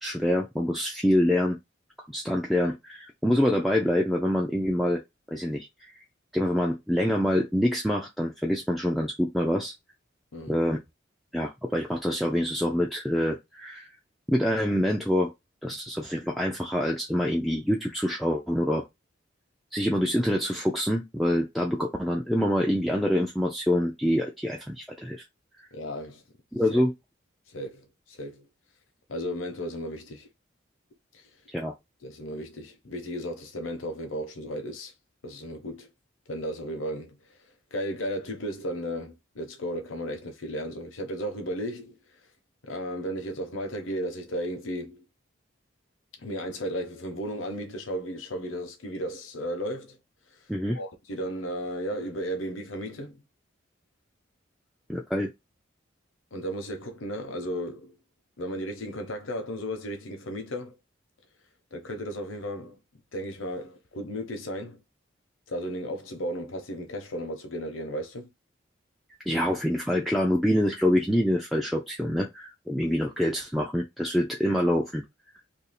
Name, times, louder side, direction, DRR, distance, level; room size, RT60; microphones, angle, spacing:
voice 1, 0.0-1.6 2.0-5.0 5.3-5.9 6.3-9.7 10.5-10.8 11.3-13.9 14.3-15.3 15.6-18.9 19.7-25.2 25.6-25.7 26.5-26.9 31.5-31.7 50.5-50.8 54.9-55.3 69.3-75.0, equal, ahead, 0.3 m, -26 dB
voice 2, 25.7-26.2 26.7-26.8 27.5-28.5 29.1-30.3 31.1-31.2 32.0-34.9 35.2-35.9 36.3-37.2 37.7-42.0 42.6-45.0 46.2-50.0 50.7-53.2 56.3-57.9 58.4-60.8 61.7-62.8 63.1-64.8 65.5-68.3, equal, 85° left, 0.9 m, -34 dB
2.8 x 2.7 x 4.1 m
head